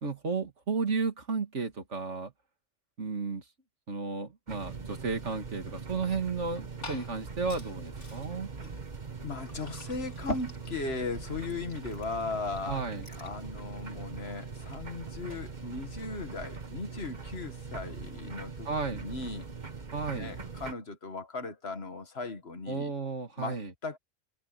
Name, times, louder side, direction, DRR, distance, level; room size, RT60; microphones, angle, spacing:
voice 1, 0.0-2.3 3.0-3.4 3.9-8.5 12.7-13.1 18.7-19.0 19.9-20.3 22.7-23.7, right 4 dB, 80° right, 2.4 m, -33 dB
sound 1, 4.5-20.7, right 5 dB, 40° right, 1.6 m, -42 dB
Liquid, 6.3-13.4, left 1 dB, 75° left, 5.1 m, -44 dB
voice 2, 9.2-12.8 13.2-19.5 20.1-22.9 23.4-24.0, left 3 dB, 60° left, 2.0 m, -37 dB
omnidirectional pair, 1.2 m